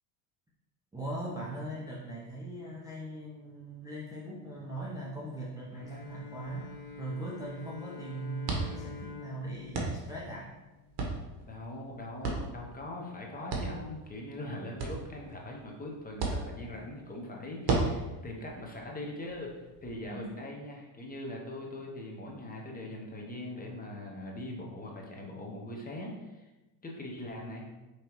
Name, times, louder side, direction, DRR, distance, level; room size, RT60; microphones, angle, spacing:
voice 1, 0.9-10.5 20.1-20.3, right 1 dB, 5° right, -6 dB, 0.6 m, -40 dB
Bowed string instrument, 5.7-11.1, left 4 dB, 40° left, 0.9 m, -47 dB
sound 1, 5.8-20.0, right 3 dB, 50° right, 1.3 m, -38 dB
voice 2, 11.5-26.5 26.8-27.7, left 1 dB, 20° left, -1 dB, 1.0 m, -41 dB
5.1 x 3.2 x 3.0 m, 1.1 s
supercardioid pair, 100°, 49 cm